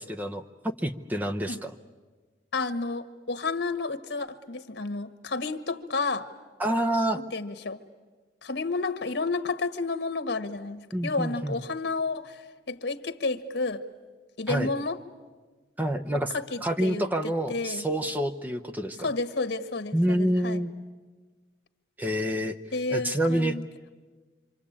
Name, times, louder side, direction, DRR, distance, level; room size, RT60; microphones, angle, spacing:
voice 1, 0.0-1.7 6.6-7.2 10.9-11.6 14.5-14.7 15.8-16.3 16.6-19.1 19.9-20.7 22.0-22.5 22.9-23.6, right 1 dB, 10° right, 5 dB, 0.8 m, -27 dB
voice 2, 2.5-6.3 7.1-7.8 8.4-13.8 14.4-15.0 16.3-17.8 19.0-20.6 22.7-23.6, left 3 dB, 85° left, 8 dB, 1.4 m, -31 dB
26.0 x 26.0 x 8.7 m, 1.4 s
head